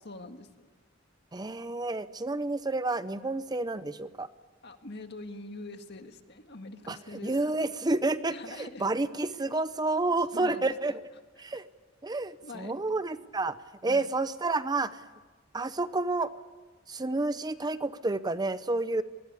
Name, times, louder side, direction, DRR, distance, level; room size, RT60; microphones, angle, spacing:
voice 1, 0.1-0.7 4.6-7.3 8.3-8.9 10.3-10.7 11.5-11.6 12.4-12.7 13.9-14.1, left 2 dB, 55° left, 7 dB, 1.8 m, -44 dB
voice 2, 1.3-4.3 6.9-11.0 11.4-11.7 12.0-13.6 13.8-15.0 15.5-16.3 16.9-19.0, right 2 dB, 20° right, 13 dB, 0.7 m, -30 dB
24.0 x 20.0 x 8.3 m, 1.3 s
head